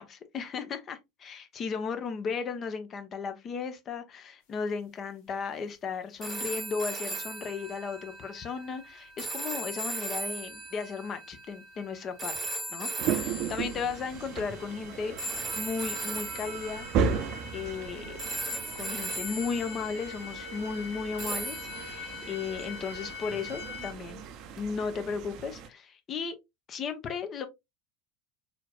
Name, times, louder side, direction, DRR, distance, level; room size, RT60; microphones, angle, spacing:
voice 1, 0.3-12.4 12.7-15.1 15.6-16.9 17.5-18.2 18.8-24.2 24.6-26.4 26.7-27.5, left 5 dB, 35° left, 0.9 m, -35 dB
sound 1, 6.2-14.4 15.2-17.9 18.2-20.3 21.2-23.4 24.6-24.7, right 2 dB, 15° right, 1.1 m, -38 dB
sound 2, 13.0-25.7, right 6 dB, 45° right, 0.6 m, -36 dB
sound 3, 13.2-23.9, left 4 dB, 60° left, 1.3 m, -44 dB
4.3 x 3.9 x 2.3 m
figure-of-eight pair, 75°, 0 cm